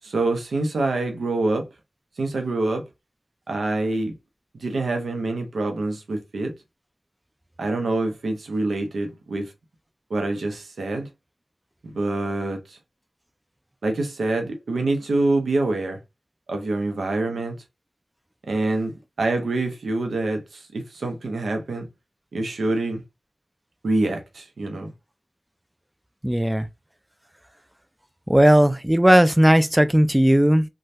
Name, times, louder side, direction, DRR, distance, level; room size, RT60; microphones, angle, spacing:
voice 1, 0.0-1.7 2.2-2.8 3.5-4.1 4.5-6.5 7.6-9.5 10.1-11.1 11.8-12.8 13.8-16.0 16.5-17.6 18.5-18.9 19.2-21.9 22.3-23.0 23.8-24.9, right 2 dB, 90° right, 0.7 m, -25 dB
voice 2, 26.2-26.7 28.3-30.7, right 1 dB, 10° right, 0.3 m, -16 dB
3.1 x 2.3 x 2.7 m
cardioid pair, 45°, 0 cm